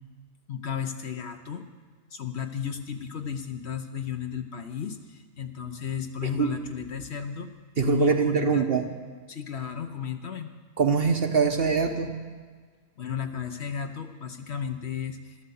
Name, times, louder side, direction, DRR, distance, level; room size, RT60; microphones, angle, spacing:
voice 1, 0.5-1.7 2.1-8.7 9.3-10.5 13.0-15.4, left 7 dB, 55° left, 6 dB, 1.0 m, -34 dB
voice 2, 7.8-8.9 10.8-12.1, right 5 dB, 50° right, 5 dB, 0.9 m, -23 dB
12.5 x 12.0 x 7.0 m, 1.5 s
omnidirectional pair, 1.5 m